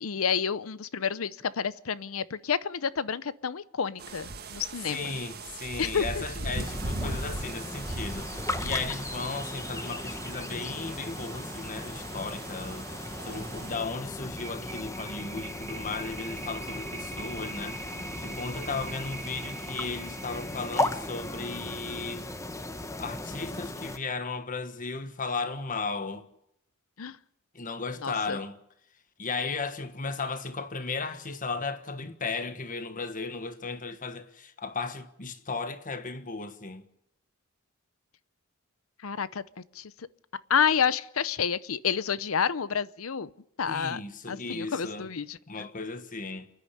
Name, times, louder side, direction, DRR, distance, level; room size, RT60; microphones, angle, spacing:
voice 1, 0.0-5.1 5.8-6.2 27.0-27.2 28.0-28.4 39.0-39.4 39.7-40.1 40.5-43.3 43.6-44.0 44.3-45.7, left 7 dB, 80° left, 0.7 m, -29 dB
sound 1, 4.0-13.8, right 2 dB, 50° right, 1.7 m, -39 dB
voice 2, 4.9-22.3 23.0-26.3 27.5-28.6 29.2-36.8 43.7-45.1 45.5-46.5, left 4 dB, 40° left, 1.4 m, -35 dB
sound 2, 6.6-24.0, left 2 dB, 15° left, 1.0 m, -37 dB
sound 3, 13.1-23.4, right 3 dB, 35° right, 3.1 m, -44 dB
28.5 x 10.0 x 9.9 m
head